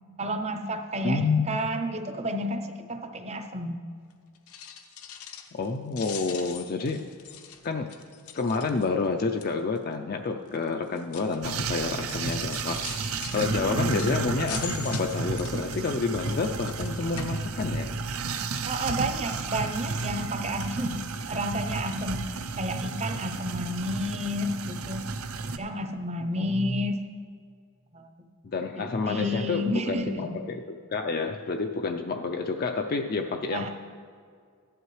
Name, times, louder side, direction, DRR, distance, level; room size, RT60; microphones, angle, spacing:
voice 1, 0.2-3.8 13.5-14.0 18.7-22.2 22.6-25.0 25.4-27.0 27.9-28.1 28.8-30.3 33.5-33.7, equal, 30° right, 7 dB, 0.6 m, -31 dB
voice 2, 1.0-1.6 5.5-7.1 7.6-7.9 8.3-17.9 26.3-26.8 28.4-30.6 30.9-33.7, left 4 dB, 40° left, 4 dB, 0.4 m, -29 dB
sound 1, 4.4-5.7 5.9-9.1 9.4-9.8 10.5-18.0 18.3-19.0 19.3-19.5 20.0-20.1 20.4-20.5, left 9 dB, 80° left, 0.8 m, -43 dB
sound 2, 11.4-25.6, right 4 dB, 75° right, 0.6 m, -32 dB
15.0 x 11.0 x 3.2 m, 2.2 s
head